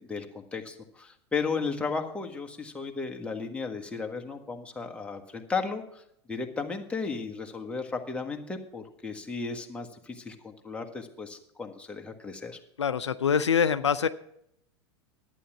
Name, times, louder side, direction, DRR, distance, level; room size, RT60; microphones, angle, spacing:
voice 1, 0.0-6.0 6.3-12.6, left 4 dB, 10° left, 2 dB, 1.4 m, -35 dB
voice 2, 12.8-14.1, left 7 dB, 90° left, 11 dB, 0.5 m, -24 dB
11.5 x 9.1 x 5.9 m, 0.72 s
hypercardioid pair, 100°, 14 cm